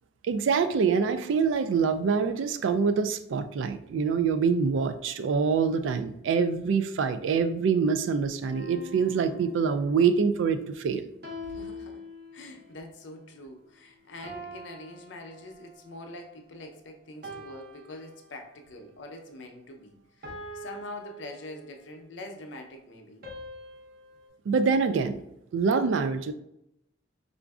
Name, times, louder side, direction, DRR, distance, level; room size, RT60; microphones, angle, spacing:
voice 1, 0.2-11.1 24.5-25.2 25.5-26.3, right 5 dB, 75° right, 10 dB, 0.3 m, -25 dB
sound 1, 8.5-10.2 11.2-12.7 14.2-15.9 17.2-18.7 20.2-22.0 23.2-24.3, left 1 dB, 50° right, 0.7 m, -44 dB
voice 2, 11.5-12.0 12.3-23.3, left 1 dB, 70° left, 3 dB, 0.6 m, -44 dB
4.9 x 2.5 x 2.3 m, 0.79 s
head